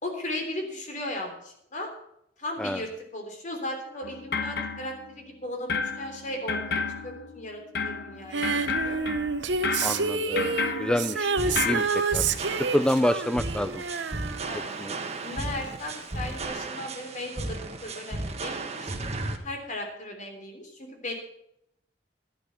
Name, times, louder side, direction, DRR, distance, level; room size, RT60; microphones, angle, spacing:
voice 1, 0.0-1.9 2.4-9.0 14.5-14.8 15.2-19.0 19.4-21.1, left 1 dB, 45° left, 3 dB, 3.3 m, -36 dB
sound 1, 4.0-5.4 5.7-11.8, left 4 dB, 60° left, 1.2 m, -32 dB
Female singing, 8.3-15.3 16.4-16.5, right 5 dB, 80° right, 0.9 m, -29 dB
voice 2, 9.8-12.2 12.7-13.8 14.5-14.9, left 1 dB, 5° left, 11 dB, 0.4 m, -28 dB
sound 2, 11.4-19.4, right 2 dB, 35° right, 1.4 m, -35 dB
12.0 x 10.5 x 5.8 m, 0.76 s
head